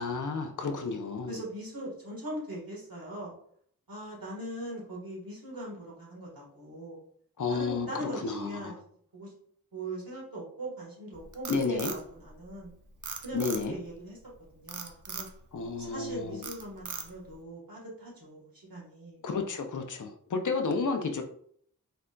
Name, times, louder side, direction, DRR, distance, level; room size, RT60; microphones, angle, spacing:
voice 1, 0.0-1.4 7.4-8.8 11.5-11.9 13.3-13.7 15.5-16.4 19.2-21.2, left 4 dB, 60° left, 5 dB, 0.5 m, -31 dB
voice 2, 1.3-3.3 3.9-7.0 7.5-8.8 9.1-9.3 9.7-12.7 13.2-14.2 14.5-15.3 15.8-19.2 20.6-20.7, right 1 dB, 75° right, -4 dB, 1.5 m, -40 dB
Frog, 11.1-12.7 13.0-13.9 14.7-15.3 15.8-16.1 16.4-17.3, right 5 dB, 60° right, 0.5 m, -39 dB
3.8 x 3.3 x 2.2 m, 0.62 s
wide cardioid pair, 60°, 35 cm